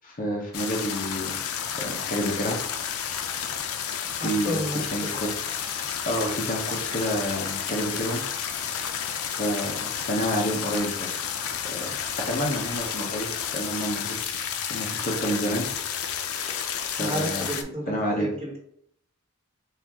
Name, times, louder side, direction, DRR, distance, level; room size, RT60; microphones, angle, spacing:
voice 1, 0.0-1.4 1.8-2.6 4.2-4.6 4.9-5.4 6.0-8.2 9.2-11.1 11.6-11.9 12.3-15.7 17.0-17.5 17.9-18.3, equal, 40° left, -1 dB, 0.8 m, -29 dB
sound 1, 0.5-17.6, left 8 dB, 75° left, 0.5 m, -31 dB
voice 2, 4.2-5.2 17.0-18.6, equal, 30° right, -3 dB, 1.4 m, -31 dB
4.4 x 2.5 x 3.5 m, 0.69 s
head